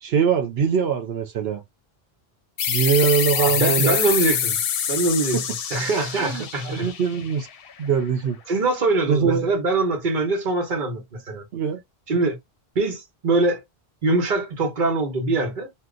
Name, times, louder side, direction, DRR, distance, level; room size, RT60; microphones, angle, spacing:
voice 1, 0.0-1.6 2.7-4.0 6.2-7.5 7.8-8.4 9.1-9.4 11.5-11.8, right 7 dB, 80° right, 0.9 m, -22 dB
sound 1, 2.6-7.9, left 8 dB, 70° left, 0.8 m, -26 dB
voice 2, 3.3-4.6 4.9-6.9 8.5-11.4 12.1-12.4 12.7-13.6 14.0-15.7, right 2 dB, 55° right, 1.1 m, -23 dB
2.8 x 2.2 x 3.7 m
omnidirectional pair, 1.0 m